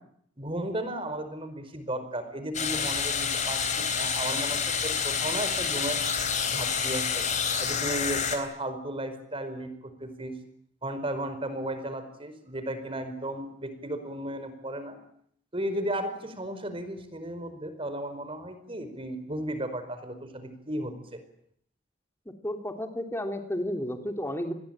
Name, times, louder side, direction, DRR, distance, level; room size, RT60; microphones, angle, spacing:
voice 1, 0.4-6.0 6.5-7.2 7.6-10.3 10.8-15.0 15.5-21.2, right 1 dB, 30° right, 9 dB, 4.9 m, -34 dB
sound 1, 2.5-8.4, left 6 dB, 40° left, 4.2 m, -28 dB
voice 2, 22.2-24.5, left 1 dB, 15° left, 5 dB, 3.2 m, -32 dB
27.0 x 21.0 x 9.0 m, 0.68 s
head